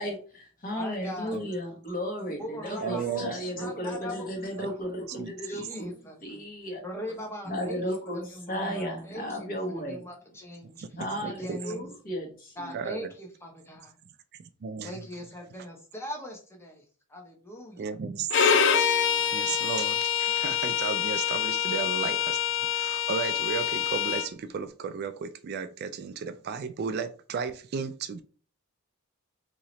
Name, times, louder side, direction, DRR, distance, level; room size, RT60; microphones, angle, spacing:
voice 1, 0.0-5.9 6.2-6.8 7.4-10.0 11.0-12.8, equal, 40° left, 1.2 m, -34 dB
voice 2, 0.8-1.5 2.4-4.3 4.6-4.7 5.5-6.2 6.8-7.8 8.1-10.8 11.2-11.8 12.6-14.0 14.8-16.8 17.1-17.9, left 1 dB, 10° left, 0.8 m, -40 dB
voice 3, 2.8-3.3 4.6-4.7 5.2-5.3 10.8-11.7 12.7-13.1 14.4-14.9 17.8-18.3 19.2-22.4 22.7-28.2, right 6 dB, 45° right, 0.3 m, -34 dB
Bowed string instrument, 18.3-24.3, left 8 dB, 55° left, 0.4 m, -26 dB
3.0 x 2.8 x 4.0 m
head